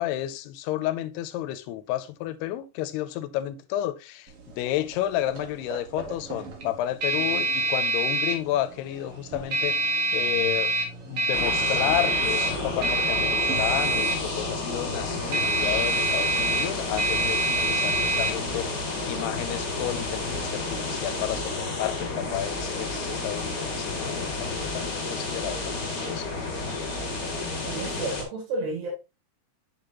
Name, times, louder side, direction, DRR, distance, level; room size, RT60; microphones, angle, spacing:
voice 1, 0.0-10.7 11.1-26.3, left 13 dB, 85° left, 2.6 m, -31 dB
sound 1, 4.3-21.1, right 2 dB, 50° right, 1.9 m, -28 dB
sound 2, 11.3-28.2, left 3 dB, 35° left, 2.2 m, -31 dB
voice 2, 27.7-28.9, right 2 dB, 85° right, 4.3 m, -31 dB
7.2 x 6.8 x 2.9 m
omnidirectional pair, 4.6 m